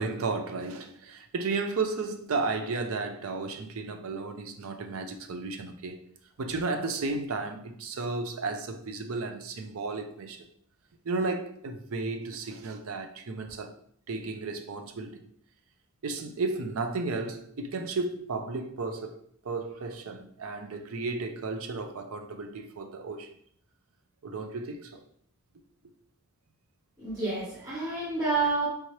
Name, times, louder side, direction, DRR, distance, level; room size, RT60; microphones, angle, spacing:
voice 1, 0.0-6.0 6.4-10.5 11.0-13.7 14.1-15.2 16.0-19.2 19.4-23.3 24.2-25.0, right 3 dB, 65° right, 0.5 m, -33 dB
voice 2, 27.0-28.7, right 3 dB, 15° right, 1.2 m, -29 dB
4.7 x 2.8 x 3.2 m
head